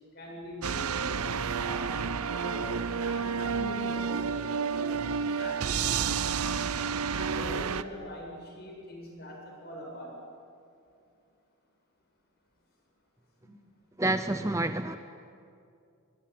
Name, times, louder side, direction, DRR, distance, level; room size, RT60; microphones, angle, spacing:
voice 1, 0.1-1.1 1.5-2.0 2.3-6.7 7.1-10.2 13.4-13.5, left 1 dB, 45° left, -1 dB, 7.5 m, -42 dB
sound 1, 0.6-7.8, right 6 dB, 90° right, 0.8 m, -30 dB
voice 2, 14.0-15.0, right 2 dB, 15° right, 9 dB, 0.6 m, -28 dB
25.0 x 21.0 x 9.5 m, 2.5 s
head